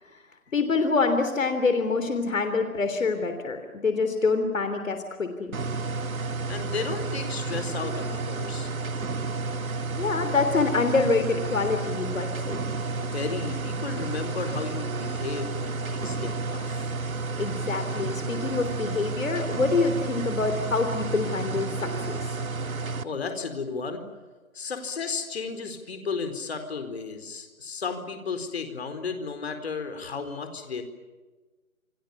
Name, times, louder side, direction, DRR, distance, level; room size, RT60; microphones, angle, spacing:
voice 1, 0.5-5.6 10.0-12.7 17.4-22.3, left 4 dB, 70° left, 7 dB, 3.5 m, -26 dB
sound 1, 5.5-23.0, right 3 dB, 80° right, 2.1 m, -31 dB
voice 2, 6.5-8.7 13.0-16.9 23.0-24.0 24.5-30.8, left 5 dB, 50° left, 7 dB, 4.4 m, -34 dB
29.0 x 24.0 x 7.3 m, 1.3 s
hypercardioid pair, 170°, 41 cm